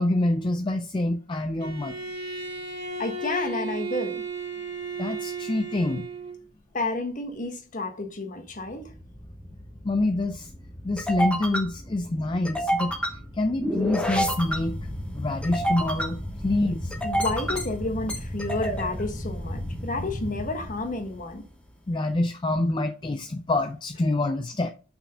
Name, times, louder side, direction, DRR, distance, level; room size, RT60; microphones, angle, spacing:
voice 1, 0.0-2.0 5.0-6.1 9.8-10.5 10.8-12.9 13.3-14.8 15.1-16.9 21.9-24.7, left 2 dB, 25° left, 0.4 m, -26 dB
Bowed string instrument, 1.6-6.4, right 3 dB, 55° right, 2.0 m, -34 dB
voice 2, 3.0-4.2 6.7-8.9 17.0-21.4, left 2 dB, 40° left, 1.2 m, -31 dB
sound 1, 8.6-21.4, equal, 5° left, 1.0 m, -31 dB
5.7 x 4.3 x 5.5 m
head